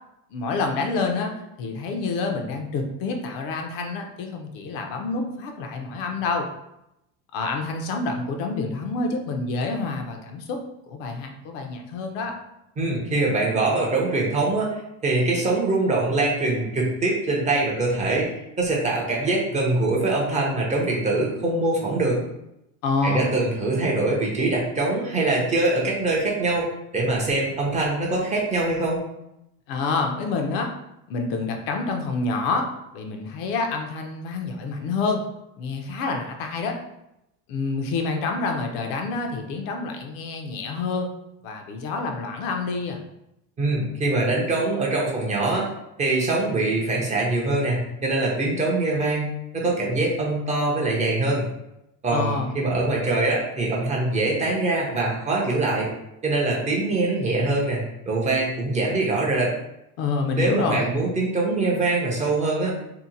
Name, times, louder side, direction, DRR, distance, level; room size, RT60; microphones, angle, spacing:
voice 1, 0.3-6.5 7.3-10.6 10.9-12.4 22.8-23.3 29.7-30.7 31.1-35.2 35.6-36.8 37.5-41.1 41.4-43.0 52.1-52.6 60.0-61.0, left 3 dB, 65° left, 3 dB, 0.6 m, -27 dB
voice 2, 12.8-18.3 18.6-22.2 23.0-26.7 26.9-29.0 43.6-45.7 46.0-51.5 52.0-55.9 56.2-59.5 60.4-62.7, right 2 dB, 20° right, -3 dB, 0.5 m, -23 dB
2.8 x 2.1 x 3.8 m, 0.86 s
cardioid pair, 165°, 37 cm